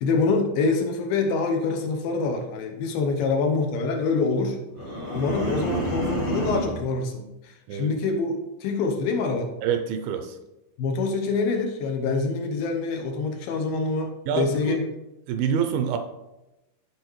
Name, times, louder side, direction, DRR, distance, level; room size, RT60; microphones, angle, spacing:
voice 1, 0.0-4.6 5.1-9.5 10.8-14.9, left 4 dB, 75° left, 4 dB, 2.4 m, -25 dB
sound 1, 4.7-6.9, right 1 dB, 35° right, 0.8 m, -28 dB
voice 2, 9.6-10.4 14.3-14.8 15.3-16.0, right 7 dB, 80° right, 7 dB, 2.2 m, -26 dB
11.0 x 5.0 x 3.1 m, 0.98 s
omnidirectional pair, 4.4 m